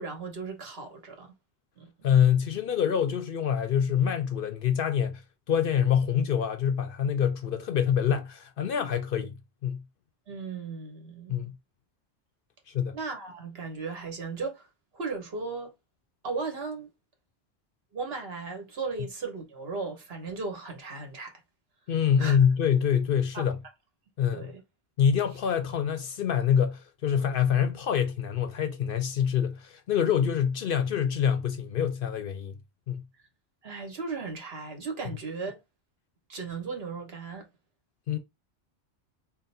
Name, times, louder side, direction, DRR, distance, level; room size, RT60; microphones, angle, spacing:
voice 1, 0.0-1.3 1.8-1.9 10.3-11.3 12.9-14.7 14.9-15.7 16.2-16.9 17.9-21.4 22.2-22.4 23.3-23.5 24.3-24.6 33.6-35.6 36.3-37.5, right 4 dB, 65° right, 1.3 m, -36 dB
voice 2, 2.0-5.2 5.5-9.3 9.6-9.8 11.3-11.5 12.7-13.0 21.9-23.6 24.2-24.5 25.0-32.5 32.9-33.0 38.1-38.2, left 8 dB, 60° left, 0.6 m, -25 dB
3.7 x 2.1 x 4.1 m
omnidirectional pair, 1.1 m